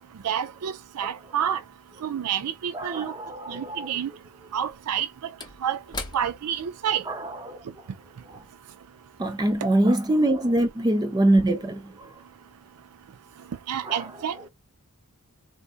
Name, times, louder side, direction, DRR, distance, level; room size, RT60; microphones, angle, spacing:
voice 1, 0.2-1.6 2.0-3.1 3.5-4.1 4.5-5.3 5.6-5.8 6.1-7.0 13.7-14.5, right 9 dB, 85° right, 0.4 m, -29 dB
voice 2, 2.7-3.9 7.1-7.6 9.2-12.1 13.8-14.0, right 1 dB, 20° right, 0.4 m, -24 dB
Slam / Wood, 2.9-3.0 4.5-9.2 9.5-9.7, left 3 dB, 20° left, 0.7 m, -43 dB
3.8 x 2.5 x 2.4 m
head